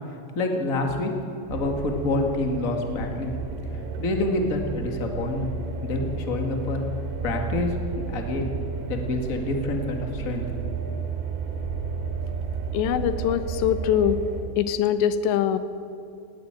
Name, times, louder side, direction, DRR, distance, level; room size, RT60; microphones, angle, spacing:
voice 1, 0.1-1.1 1.5-3.3 4.0-5.5 5.8-6.8 7.2-7.8 8.1-8.5 8.9-10.6, left 2 dB, 50° left, 3 dB, 0.9 m, -27 dB
sound 1, 1.5-14.4, right 5 dB, 90° right, 4.5 m, -32 dB
voice 2, 12.7-14.2 14.6-15.6, left 10 dB, 80° left, 11 dB, 3.2 m, -23 dB
19.0 x 17.0 x 8.9 m, 2.7 s
omnidirectional pair, 5.1 m